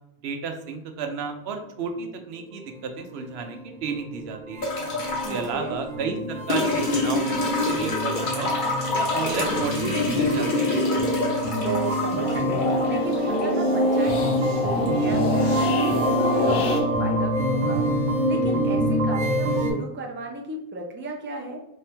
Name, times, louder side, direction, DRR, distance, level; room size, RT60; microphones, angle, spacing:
voice 1, 0.2-4.7 5.1-8.5 8.9-10.8, right 5 dB, 85° right, 5 dB, 0.9 m, -32 dB
sound 1, 2.8-19.7, right 1 dB, 50° right, 1.0 m, -26 dB
sound 2, 4.6-5.5 6.5-13.5 14.9-15.0, left 3 dB, 55° left, 1.0 m, -26 dB
voice 2, 5.2-5.8 11.6-15.8 16.2-17.9 18.2-21.6, right 3 dB, 15° right, 0 dB, 0.5 m, -34 dB
sound 3, 11.6-16.8, left 3 dB, 80° left, 0.9 m, -28 dB
3.5 x 2.8 x 3.4 m, 0.83 s
omnidirectional pair, 1.0 m